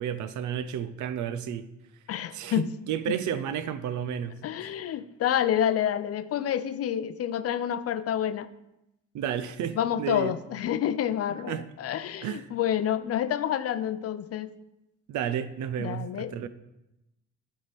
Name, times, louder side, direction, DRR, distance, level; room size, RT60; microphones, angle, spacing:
voice 1, 0.0-1.7 2.3-4.7 9.1-10.3 11.5-11.7 12.2-12.5 15.1-16.5, right 9 dB, 75° right, 12 dB, 0.6 m, -32 dB
voice 2, 2.1-2.7 4.4-8.5 9.8-14.5 15.8-16.3, left 10 dB, 55° left, 13 dB, 0.4 m, -28 dB
9.2 x 3.7 x 4.2 m, 0.89 s
cardioid pair, 90°, 30 cm